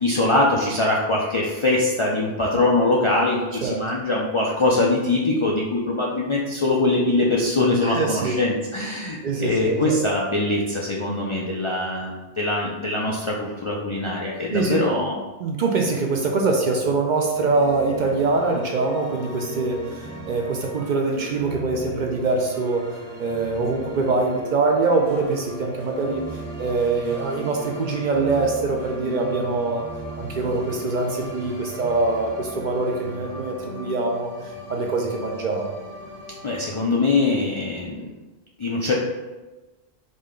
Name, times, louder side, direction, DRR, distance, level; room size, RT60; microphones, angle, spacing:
voice 1, 0.0-15.2 36.4-38.1 38.6-38.9, left 2 dB, 50° left, -4 dB, 0.3 m, -22 dB
voice 2, 7.8-8.4 9.2-10.0 14.5-14.8 15.4-22.8 23.2-26.2 26.6-29.8 30.2-34.3 34.7-35.7, right 3 dB, 60° right, 1 dB, 0.5 m, -23 dB
sound 1, 17.3-36.8, right 2 dB, 35° right, 0.9 m, -36 dB
5.0 x 2.2 x 3.7 m, 1.1 s
omnidirectional pair, 1.1 m